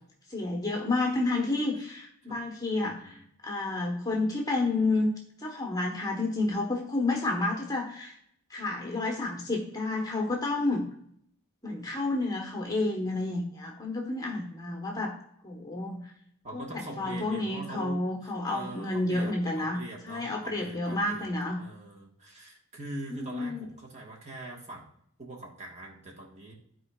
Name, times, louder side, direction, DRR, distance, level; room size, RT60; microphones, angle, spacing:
voice 1, 0.3-3.2 3.4-5.1 5.4-8.1 8.5-10.8 11.6-15.2 15.4-16.1 16.5-19.8 20.0-21.6 23.1-23.6, left 2 dB, 15° left, 0 dB, 1.1 m, -30 dB
voice 2, 2.8-3.2 16.4-21.3 21.6-24.9 25.2-26.5, right 2 dB, 30° right, -1 dB, 1.4 m, -43 dB
13.0 x 4.6 x 2.3 m, 0.69 s
head